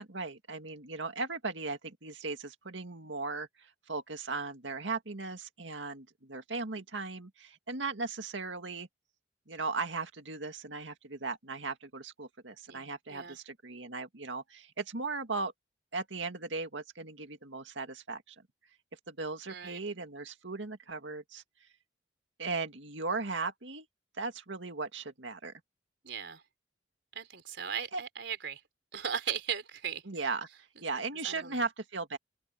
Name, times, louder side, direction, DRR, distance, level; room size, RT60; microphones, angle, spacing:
voice 1, 0.0-8.9 9.5-15.5 15.9-18.4 19.1-21.4 22.4-23.9 24.2-25.5 27.9-28.0 30.1-30.5 30.8-32.2, right 3 dB, 85° right, 2.1 m, -37 dB
voice 2, 12.7-13.4 19.5-19.8 26.0-26.4 27.1-28.6 28.9-30.3 31.2-31.6, right 7 dB, 70° right, 4.4 m, -38 dB
open air
head